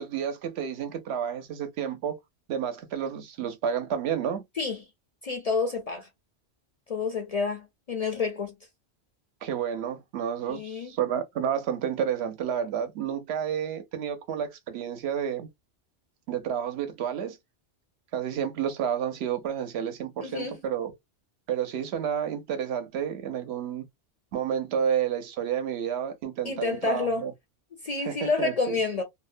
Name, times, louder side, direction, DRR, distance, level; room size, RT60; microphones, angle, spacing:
voice 1, 0.0-2.2 2.5-4.4 9.4-15.5 16.3-17.4 18.1-20.9 21.5-23.9 24.3-27.3 28.0-28.8, right 8 dB, 70° right, 0.8 m, -30 dB
voice 2, 5.2-6.1 6.9-8.5 10.5-10.9 20.2-20.6 26.4-27.3 27.8-29.0, left 4 dB, 55° left, 0.4 m, -29 dB
2.6 x 2.0 x 2.5 m
omnidirectional pair, 1.2 m